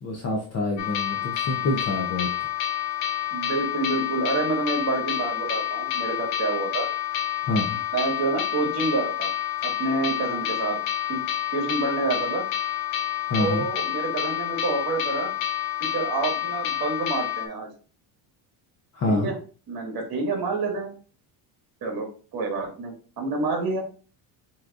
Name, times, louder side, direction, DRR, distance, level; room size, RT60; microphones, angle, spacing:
voice 1, 0.0-2.5 7.4-7.8 13.3-13.6 18.9-19.3, left 2 dB, 30° left, -1 dB, 0.8 m, -27 dB
sound 1, 0.8-17.5, left 11 dB, 60° left, 0.9 m, -28 dB
voice 2, 3.3-6.9 7.9-9.3 9.6-10.8 11.1-11.2 11.5-12.5 13.4-15.3 15.9-17.7 19.1-19.4 19.7-20.9 21.8-22.1 22.3-23.8, right 3 dB, 45° right, 2 dB, 1.9 m, -28 dB
6.2 x 3.1 x 2.5 m, 0.37 s
cardioid pair, 140°, 50 cm